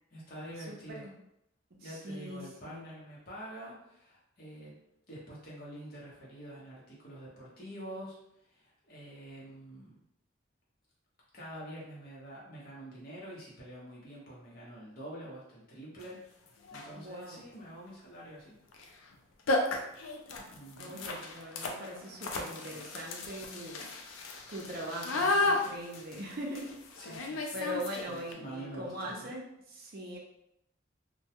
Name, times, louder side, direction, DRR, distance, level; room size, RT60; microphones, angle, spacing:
voice 1, 0.1-1.1 1.8-4.8 5.1-10.0 11.3-18.5 20.5-21.0 27.0-29.3, right 1 dB, 45° left, -6 dB, 0.9 m, -47 dB
voice 2, 0.7-1.1 1.8-2.9 17.0-17.4 20.4-20.5 20.8-23.9 24.5-26.8 27.5-30.2, equal, 50° right, -2 dB, 0.5 m, -41 dB
sound 1, 16.0-16.1 16.6-17.0 18.7-18.9 19.1-19.2 19.5-28.3, left 2 dB, 85° left, 0.4 m, -34 dB
2.2 x 2.2 x 2.8 m, 0.79 s
head